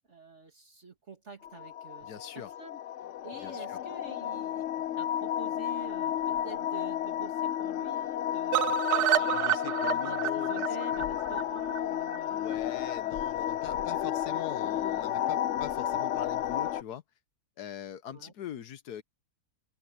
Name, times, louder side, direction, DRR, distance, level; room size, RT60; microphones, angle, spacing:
voice 1, 0.1-2.8 3.2-8.8 9.7-12.6 18.1-18.3, right 4 dB, 45° right, 2.7 m, -48 dB
sound 1, 1.4-16.8, left 10 dB, 65° left, 0.8 m, -32 dB
voice 2, 2.0-2.5 3.4-3.8 9.1-10.7 10.9-11.0 12.3-17.0 17.6-19.0, left 9 dB, 85° left, 1.5 m, -42 dB
sound 2, 8.5-12.5 12.9-13.0 13.3-13.4 13.7-13.8, right 13 dB, 90° right, 1.3 m, -30 dB
open air
omnidirectional pair, 1.6 m